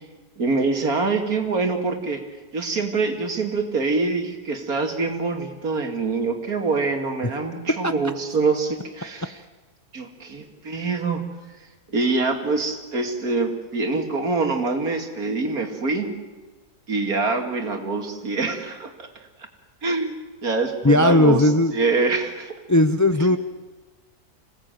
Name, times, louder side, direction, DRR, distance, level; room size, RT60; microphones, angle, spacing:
voice 1, 0.4-2.2 2.5-9.4 9.9-11.3 11.9-16.1 16.9-19.1 19.8-22.6, right 3 dB, 70° right, 4 dB, 2.8 m, -25 dB
voice 2, 20.8-21.7 22.7-23.4, left 1 dB, 25° left, 10 dB, 0.4 m, -17 dB
26.5 x 18.0 x 9.1 m, 1.3 s
omnidirectional pair, 1.6 m